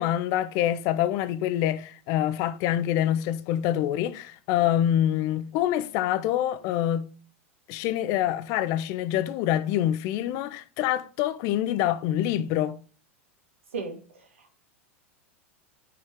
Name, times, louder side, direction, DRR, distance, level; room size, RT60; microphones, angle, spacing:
voice 1, 0.0-7.1 7.7-12.8, left 12 dB, 50° left, 0.8 m, -26 dB
voice 2, 13.7-14.6, right 4 dB, 80° right, 2.1 m, -37 dB
6.6 x 5.6 x 4.8 m
hypercardioid pair, 90°, 7 cm